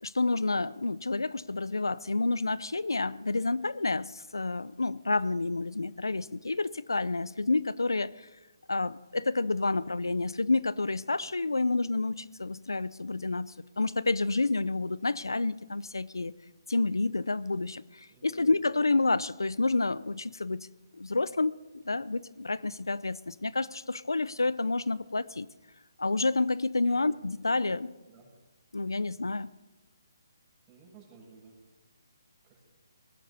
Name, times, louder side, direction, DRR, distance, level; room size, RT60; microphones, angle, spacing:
voice 1, 0.0-8.3 8.7-16.3 16.7-20.7 20.9-21.5 21.8-25.5 26.0-27.9 28.7-29.5, left 3 dB, 85° left, 19 dB, 0.5 m, -29 dB
voice 2, 18.1-18.6 26.8-27.1 27.5-27.7 28.0-28.3 30.7-31.5 32.4-32.6, right 5 dB, 20° right, -2 dB, 6.8 m, -55 dB
19.0 x 17.5 x 4.2 m, 1.1 s
figure-of-eight pair, 145°, 2 cm